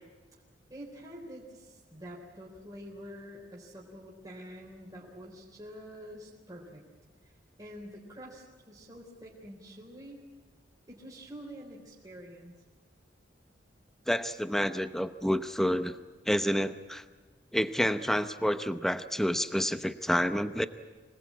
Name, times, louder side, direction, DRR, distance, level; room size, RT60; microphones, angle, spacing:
voice 1, 0.7-6.8 7.2-7.3 7.6-10.2 10.9-12.5, equal, 20° right, -3 dB, 3.9 m, -47 dB
voice 2, 14.1-16.0 16.3-17.0 17.5-20.7, equal, ahead, 11 dB, 0.8 m, -29 dB
25.5 x 19.5 x 8.6 m, 1.3 s
head